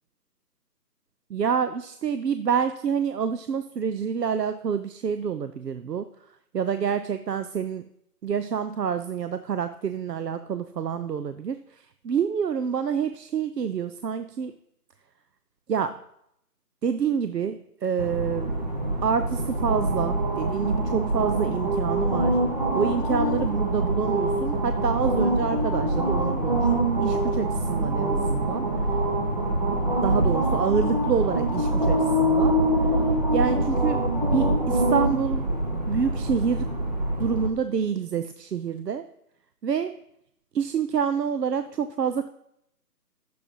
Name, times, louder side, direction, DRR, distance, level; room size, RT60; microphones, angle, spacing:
voice 1, 1.3-6.1 6.5-7.9 8.2-11.6 12.0-14.5 15.7-16.0 16.8-18.6 19.0-22.4 22.7-26.7 27.0-28.7 30.0-32.6 33.3-35.5 35.9-36.8 37.2-39.1 39.6-40.0 40.5-42.3, right 7 dB, 80° right, 10 dB, 0.7 m, -27 dB
sound 1, 18.0-37.5, right 1 dB, 25° right, 0.8 m, -24 dB
9.6 x 6.9 x 5.4 m, 0.75 s
figure-of-eight pair, 165°, 48 cm